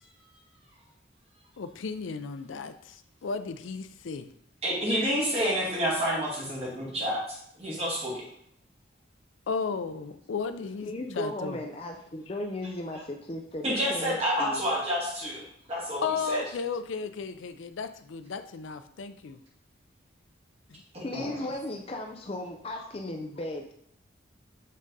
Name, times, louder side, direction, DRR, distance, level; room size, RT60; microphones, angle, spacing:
voice 1, 1.6-2.7 3.2-4.3 9.5-11.6 16.0-19.4 20.7-20.8, left 5 dB, 85° left, 10 dB, 0.4 m, -34 dB
voice 2, 4.6-8.2 13.6-16.4 20.9-21.4, equal, 30° right, -5 dB, 2.1 m, -29 dB
voice 3, 10.8-14.6 21.0-23.7, left 1 dB, 30° left, 3 dB, 0.5 m, -36 dB
7.4 x 3.8 x 4.0 m, 0.69 s
head